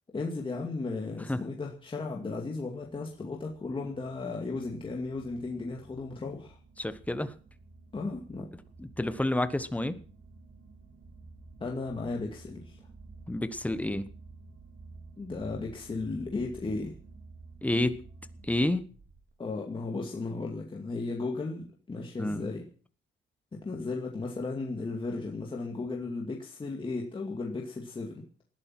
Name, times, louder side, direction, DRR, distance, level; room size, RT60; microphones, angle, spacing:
voice 1, 0.1-6.6 7.9-8.5 11.6-12.8 15.2-16.9 19.4-22.6 23.6-28.2, left 3 dB, 25° left, 0 dB, 2.4 m, -35 dB
sound 1, 2.9-19.3, right 3 dB, 55° right, 3.8 m, -52 dB
voice 2, 6.8-7.3 8.8-10.0 13.3-14.1 17.6-18.0 18.4-18.8 22.2-22.5, left 1 dB, 5° left, 11 dB, 1.1 m, -29 dB
19.5 x 12.0 x 6.0 m, 0.42 s
cardioid pair, 155°, 21 cm